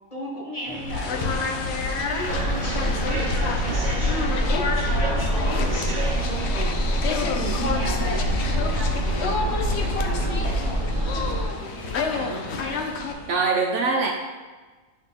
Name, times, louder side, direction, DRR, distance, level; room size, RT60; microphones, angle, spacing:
voice 1, 0.1-12.9, equal, 30° left, -5 dB, 1.3 m, -37 dB
sound 1, 0.6-13.3, right 1 dB, 10° left, 1.8 m, -40 dB
sound 2, 0.9-13.1, left 4 dB, 60° left, 0.8 m, -28 dB
sound 3, 2.3-11.4, right 1 dB, 30° right, 1.2 m, -26 dB
voice 2, 7.3-7.7 13.3-14.1, right 4 dB, 65° right, 1 dB, 0.8 m, -24 dB
9.9 x 3.3 x 3.6 m, 1.3 s
omnidirectional pair, 1.4 m